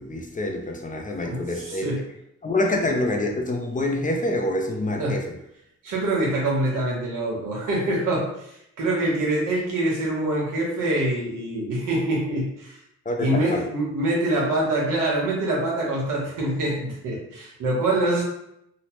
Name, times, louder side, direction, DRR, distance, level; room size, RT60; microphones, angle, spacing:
voice 1, 0.0-1.8 2.4-5.2 13.1-13.6, left 1 dB, 25° left, 2 dB, 0.4 m, -26 dB
voice 2, 1.2-2.0 5.0-5.2 5.8-12.8 13.2-18.2, right 1 dB, 85° right, -4 dB, 1.2 m, -25 dB
3.1 x 2.0 x 2.9 m, 0.78 s
cardioid pair, 95°, 31 cm